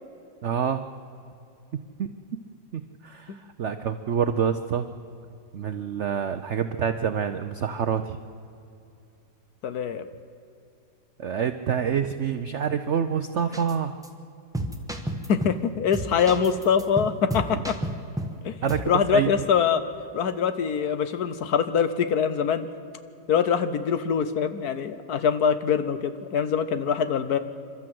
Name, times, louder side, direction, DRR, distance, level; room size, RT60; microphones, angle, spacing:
voice 1, 0.4-0.8 2.0-2.1 2.7-3.3 3.6-4.9 5.5-8.2 11.2-13.9 18.6-18.8 19.1-19.3, right 7 dB, 80° right, 9 dB, 0.6 m, -26 dB
voice 2, 9.6-10.1 15.3-17.8 18.4-18.6 18.9-19.8 20.1-22.7 23.3-27.4, left 7 dB, 60° left, 11 dB, 1.2 m, -24 dB
sound 1, 13.5-13.7 14.0-14.1 14.5-15.6 15.9-18.4 18.7-18.9, right 1 dB, ahead, 1.0 m, -31 dB
28.0 x 13.0 x 7.7 m, 2.7 s
omnidirectional pair, 2.1 m